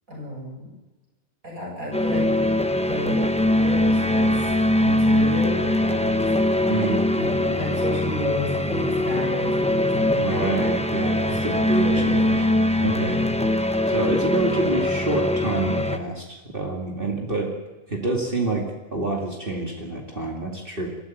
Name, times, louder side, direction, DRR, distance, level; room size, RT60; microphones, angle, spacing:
voice 1, 0.1-0.7 1.4-2.2 2.6-4.5 4.8-6.3 7.2-10.3 11.4-12.5 12.8-13.5, left 1 dB, 70° right, -1 dB, 7.9 m, -32 dB
sound 1, 1.9-16.0, left 1 dB, 5° left, 0.8 m, -22 dB
voice 2, 6.7-7.0 10.1-12.5 12.8-13.2 13.9-17.5 17.9-18.6 18.9-20.9, right 2 dB, 40° right, 0 dB, 2.7 m, -27 dB
24.0 x 15.0 x 9.4 m, 1.2 s
omnidirectional pair, 1.5 m